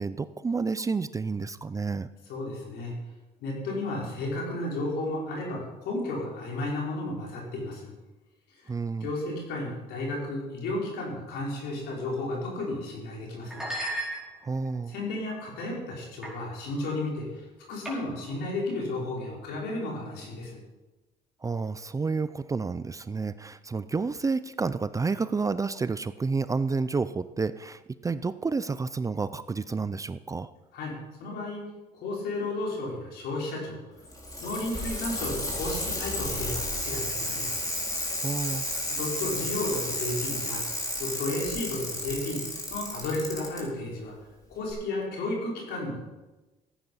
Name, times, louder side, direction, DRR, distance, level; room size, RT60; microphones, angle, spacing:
voice 1, 0.0-2.1 8.7-9.1 14.4-14.9 21.4-30.5 38.2-38.7, right 4 dB, 20° right, 14 dB, 0.5 m, -30 dB
voice 2, 2.3-2.9 3.4-7.9 9.0-13.6 14.9-20.6 30.7-30.9 31.2-31.6 31.9-33.8 34.4-37.5 38.9-40.6 41.0-42.4 42.7-44.1 44.5-46.0, left 2 dB, 80° left, -3 dB, 5.4 m, -33 dB
sound 1, 12.5-12.8 13.5-14.7 15.3-15.6 16.2-16.4 16.7-16.9 17.8-18.3, right 1 dB, 5° right, 4.9 m, -36 dB
Bicycle, 34.0-43.6 44.7-44.8, left 1 dB, 20° left, 4.1 m, -32 dB
15.0 x 9.3 x 5.6 m, 1.1 s
cardioid pair, 110°, 17 cm